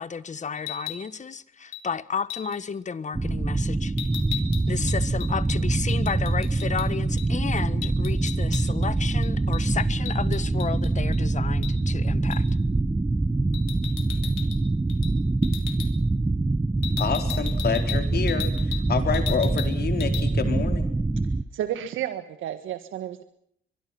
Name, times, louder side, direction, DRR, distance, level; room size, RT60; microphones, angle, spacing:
voice 1, 0.0-3.9 4.7-12.4, left 6 dB, 35° left, 1.4 m, -32 dB
sound 1, 0.6-1.0 1.7-1.9 2.3-2.6 4.0-6.9 7.2-7.3 7.6-8.9 9.2-11.2 11.6-11.8 12.3-12.5 13.5-14.6 14.9-15.1 15.4-15.9 16.8-18.9 19.1-19.7 20.0-20.2, left 11 dB, 85° left, 3.1 m, -37 dB
sound 2, 3.2-21.4, right 2 dB, 15° right, 0.8 m, -24 dB
voice 2, 17.0-20.9, left 7 dB, 55° left, 4.5 m, -28 dB
voice 3, 21.5-23.2, right 11 dB, 80° right, 1.6 m, -31 dB
24.0 x 23.0 x 6.0 m
cardioid pair, 90°, 20 cm